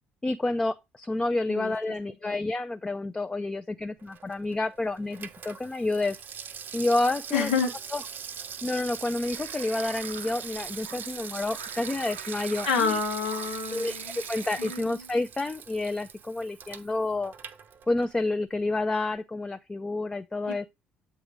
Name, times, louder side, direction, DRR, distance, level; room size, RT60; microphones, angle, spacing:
voice 1, 0.2-6.2 6.7-7.5 7.9-8.0 8.6-13.0 13.7-17.3 17.9-20.7, left 2 dB, 15° left, 0.4 m, -29 dB
Water tap faucet / Sink (filling or washing), 4.0-18.3 18.6-18.7, right 7 dB, 50° right, 0.6 m, -41 dB
voice 2, 7.3-7.7 12.6-14.2 14.6-15.0 20.5-20.7, left 5 dB, 80° left, 1.0 m, -28 dB
sound 1, 8.9-14.8, right 7 dB, 85° right, 0.7 m, -45 dB
7.8 x 3.7 x 4.6 m
hypercardioid pair, 50°, 4 cm